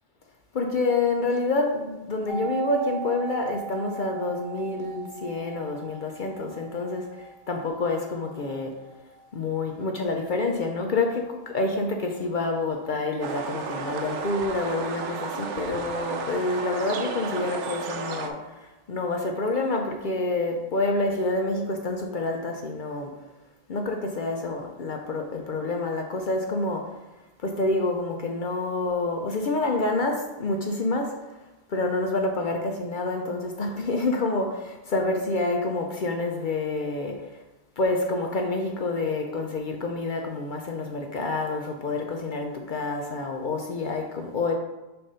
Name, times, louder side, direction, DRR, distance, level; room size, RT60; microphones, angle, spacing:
voice 1, 0.5-8.8 9.3-23.1 23.7-26.9 27.4-31.1 31.7-37.3 37.8-44.5, left 2 dB, 55° left, 2 dB, 0.6 m, -28 dB
sound 1, 2.3-12.0 12.3-12.4, right 6 dB, 90° left, 1.2 m, -40 dB
sound 2, 13.2-18.3, right 5 dB, 70° right, 0.9 m, -33 dB
6.6 x 2.6 x 5.5 m, 1.1 s
omnidirectional pair, 1.3 m